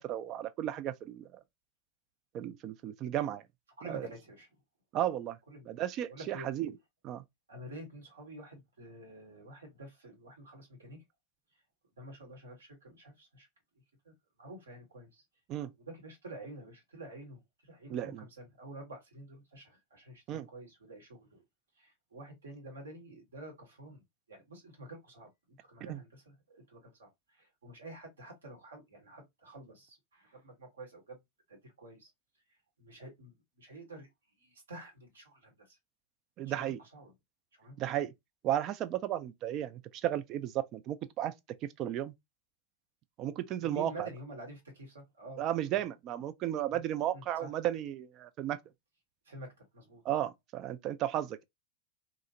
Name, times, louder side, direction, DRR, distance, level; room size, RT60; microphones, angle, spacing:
voice 1, 0.0-1.4 2.3-3.4 3.9-4.1 4.9-5.4 5.7-6.7 7.0-7.2 15.5-15.7 17.9-18.2 20.3-20.5 25.9-26.0 36.4-36.8 37.8-38.1 38.4-41.3 41.6-42.1 43.2-44.1 45.4-48.6 50.0-51.4, right 12 dB, 35° right, 0.3 m, -34 dB
voice 2, 3.8-4.6 5.5-6.5 7.5-11.0 11.5-11.6 12.0-13.5 14.0-15.2 15.8-21.4 21.7-24.0 24.3-31.2 31.5-32.1 32.5-34.1 34.4-35.8 36.4-37.1 37.5-37.9 43.6-45.4 45.7-45.8 46.7-46.8 47.1-47.5 49.2-50.0, right 1 dB, 70° right, 1.2 m, -49 dB
2.7 x 2.4 x 2.8 m
figure-of-eight pair, 90°, 0 cm